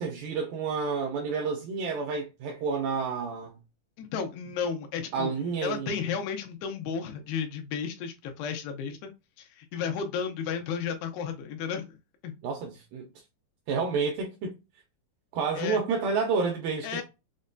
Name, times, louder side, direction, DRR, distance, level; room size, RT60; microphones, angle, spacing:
voice 1, 0.0-3.6 5.1-6.1 12.4-13.1 13.7-14.6 15.3-17.0, right 5 dB, 85° right, 2.0 m, -30 dB
voice 2, 4.0-5.3 5.6-9.1 9.4-12.0 12.2-12.3 15.6-15.8 16.8-17.0, left 6 dB, 85° left, 2.8 m, -33 dB
6.3 x 2.2 x 2.5 m
omnidirectional pair, 4.7 m